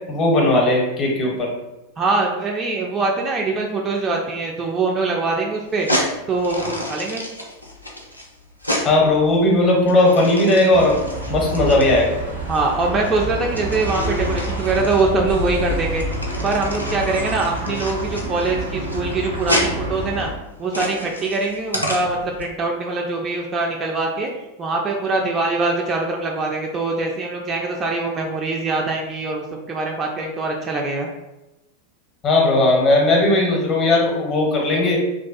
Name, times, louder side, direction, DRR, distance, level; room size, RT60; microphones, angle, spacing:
voice 1, 0.1-1.5 8.8-11.0 11.3-12.2 32.2-35.0, left 2 dB, 30° left, -1 dB, 0.7 m, -17 dB
voice 2, 2.0-5.9 6.3-7.2 12.5-16.0 16.4-20.3 20.6-24.3 24.6-31.1, right 3 dB, 25° right, 0 dB, 0.3 m, -23 dB
sound 1, 5.7-22.4, equal, 85° left, 0.4 m, -30 dB
sound 2, 10.7-20.3, right 1 dB, 70° right, 0.6 m, -28 dB
2.5 x 2.2 x 2.3 m, 0.96 s
figure-of-eight pair, 90°, 0 cm